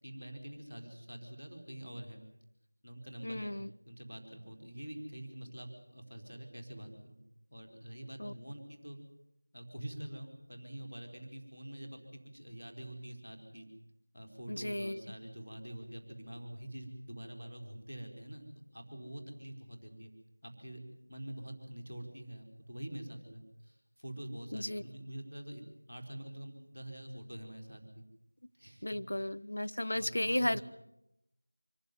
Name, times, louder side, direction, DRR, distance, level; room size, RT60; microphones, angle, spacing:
voice 1, 0.0-2.2 2.8-3.5 3.9-7.2 7.5-9.0 9.5-12.0 12.3-13.7 14.1-18.5 18.7-20.1 20.4-20.8 21.1-28.0 28.5-29.3 29.9-30.6, right 1 dB, 5° left, -12 dB, 3.9 m, -46 dB
voice 2, 3.2-3.7 8.2-8.3 14.5-15.0 24.5-24.8 28.8-30.6, left 1 dB, 50° left, 9 dB, 0.8 m, -34 dB
25.0 x 15.0 x 9.4 m, 0.83 s
figure-of-eight pair, 175°, 0 cm